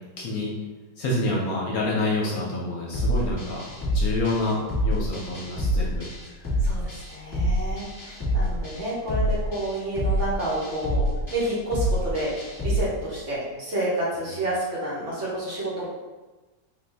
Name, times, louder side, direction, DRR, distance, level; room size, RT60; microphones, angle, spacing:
voice 1, 0.2-0.5 1.0-3.6 3.9-4.6 4.8-6.1, left 2 dB, 65° left, -3 dB, 1.0 m, -27 dB
sound 1, 2.9-12.8, equal, 10° left, 1.3 m, -27 dB
voice 2, 6.6-11.0 11.3-12.4 12.6-15.9, right 1 dB, 50° right, -7 dB, 1.1 m, -29 dB
4.1 x 2.5 x 3.3 m, 1.2 s
omnidirectional pair, 1.9 m